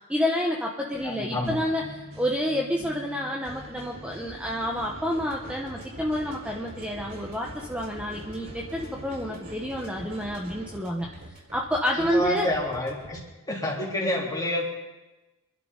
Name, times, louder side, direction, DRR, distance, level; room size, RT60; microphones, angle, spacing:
voice 1, 0.1-1.8 2.2-11.1 11.5-12.5, equal, 5° right, -2 dB, 1.2 m, -29 dB
sound 1, 0.9-10.7, equal, 65° right, 5.6 m, -44 dB
voice 2, 1.0-1.6 12.0-13.2 13.5-14.7, left 1 dB, 20° left, -3 dB, 3.5 m, -28 dB
sound 2, 5.2-13.2, equal, 50° right, 4.8 m, -46 dB
26.0 x 11.5 x 4.0 m, 1.1 s
head